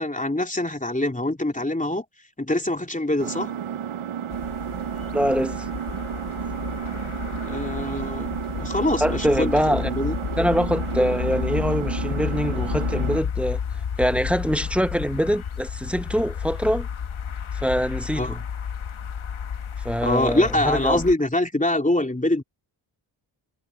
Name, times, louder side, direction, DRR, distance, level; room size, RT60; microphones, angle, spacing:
voice 1, 0.0-2.0 2.4-3.5 7.4-10.2 18.2-18.4 20.0-22.4, left 1 dB, 15° left, 3.1 m, -24 dB
Engine, 3.2-13.2, right 9 dB, 85° right, 0.9 m, -32 dB
sound 1, 4.3-21.2, left 7 dB, 75° left, 1.5 m, -31 dB
voice 2, 5.1-5.7 9.0-9.9 10.4-13.6 14.0-16.9 17.5-18.4 19.8-21.0, equal, ahead, 1.3 m, -24 dB
cardioid pair, 45°, 49 cm